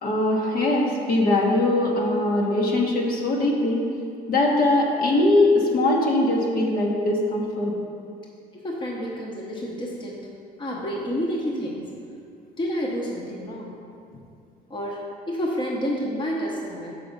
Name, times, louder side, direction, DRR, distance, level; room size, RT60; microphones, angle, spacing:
voice 1, 0.0-3.8 4.3-7.8, left 2 dB, 60° left, -2 dB, 1.4 m, -21 dB
voice 2, 8.5-10.3 10.6-11.9 12.6-13.7 14.7-15.0 15.3-16.9, equal, 25° left, -2 dB, 1.1 m, -29 dB
6.9 x 5.7 x 5.3 m, 2.5 s
cardioid pair, 110°, 17 cm